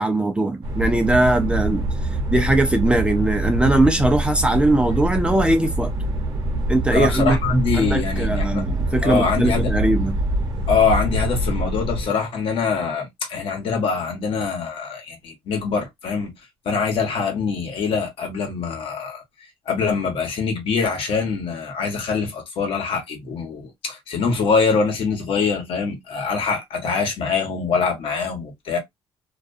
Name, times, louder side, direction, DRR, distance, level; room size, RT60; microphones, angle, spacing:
voice 1, 0.0-1.8 2.3-5.9 6.7-7.4 7.7-10.2, right 2 dB, 10° right, 0.5 m, -20 dB
sound 1, 0.6-12.1, right 1 dB, 45° right, 0.9 m, -24 dB
voice 2, 6.9-8.6 9.0-9.7 10.7-16.3 16.7-19.2 19.7-28.8, left 5 dB, 65° left, 1.0 m, -23 dB
2.4 x 2.2 x 2.5 m
cardioid pair, 135°, 10 cm